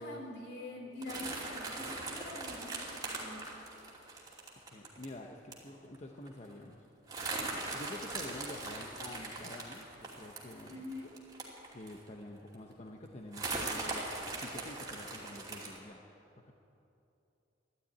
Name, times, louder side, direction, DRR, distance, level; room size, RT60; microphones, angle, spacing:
voice 1, 0.0-3.6 10.7-11.1, left 2 dB, 65° left, 1 dB, 3.0 m, -45 dB
sound 1, 1.0-5.1 5.5-5.7 5.9-6.0 6.3-6.5 7.1-12.1 12.5-12.6 13.3-15.8, right 3 dB, 20° right, 2.6 m, -40 dB
voice 2, 4.7-6.8 7.7-10.9 11.7-16.0, left 1 dB, 40° left, 2 dB, 0.9 m, -48 dB
13.0 x 12.0 x 9.5 m, 2.8 s
head